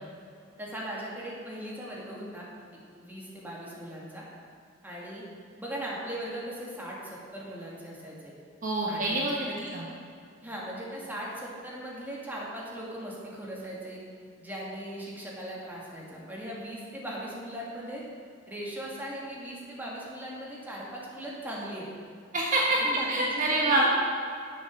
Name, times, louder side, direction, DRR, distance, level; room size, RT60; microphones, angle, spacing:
voice 1, 0.6-2.4 3.0-4.2 4.8-5.2 5.6-8.3 8.9-9.7 10.4-14.0 14.4-18.0 18.5-21.8 22.8-23.9, right 1 dB, 10° right, -5 dB, 2.3 m, -39 dB
voice 2, 8.6-9.5 9.7-9.9 22.3-22.8 23.1-23.9, right 2 dB, 40° right, -3 dB, 1.2 m, -26 dB
10.5 x 7.3 x 6.4 m, 2.4 s
head